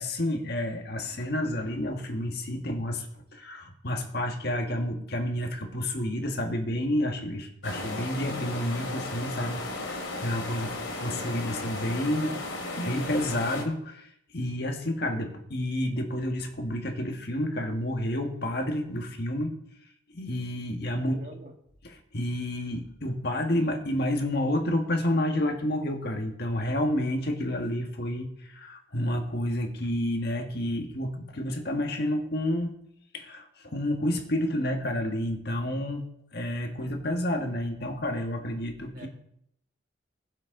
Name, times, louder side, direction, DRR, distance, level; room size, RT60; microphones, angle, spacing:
voice 1, 0.0-10.7 11.0-12.4 12.8-19.5 20.1-21.2 22.1-32.7 33.1-39.1, left 1 dB, 55° left, 4 dB, 1.7 m, -30 dB
sound 1, 7.6-13.6, left 2 dB, 85° left, 2.8 m, -35 dB
voice 2, 21.0-21.5 38.9-39.1, right 1 dB, 45° right, 3 dB, 1.8 m, -45 dB
21.0 x 7.5 x 3.9 m, 0.73 s
head